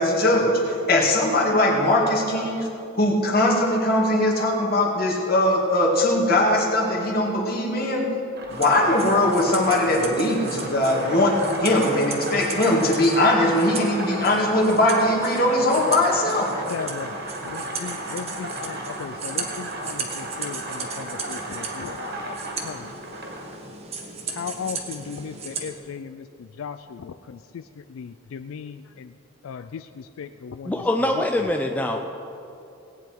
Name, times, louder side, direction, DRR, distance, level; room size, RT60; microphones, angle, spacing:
voice 1, 0.0-8.1 8.5-16.5, left 1 dB, 45° left, -2 dB, 2.0 m, -20 dB
sound 1, 8.3-23.5, right 2 dB, 50° right, 1.7 m, -35 dB
sound 2, 8.5-25.7, right 4 dB, 30° right, 1.2 m, -36 dB
voice 2, 16.5-17.1 17.4-22.4 22.6-22.9 24.3-29.1 29.4-30.8 31.2-31.3, left 6 dB, 75° left, 10 dB, 0.3 m, -37 dB
voice 3, 30.7-32.0, left 1 dB, 5° left, 3 dB, 0.4 m, -23 dB
18.0 x 9.2 x 4.5 m, 2.8 s
head